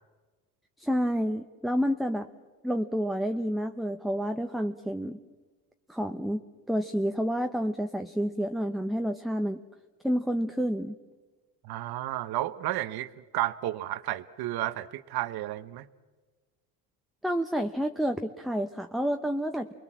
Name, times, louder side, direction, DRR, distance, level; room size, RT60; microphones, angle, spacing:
voice 1, 0.8-2.3 2.6-5.2 5.9-6.4 6.7-9.6 10.0-10.9 17.2-19.7, equal, ahead, 5 dB, 0.9 m, -29 dB
voice 2, 11.6-15.9, right 15 dB, 65° right, 14 dB, 1.1 m, -32 dB
29.5 x 22.0 x 7.4 m, 1.3 s
cardioid pair, 100°, 40 cm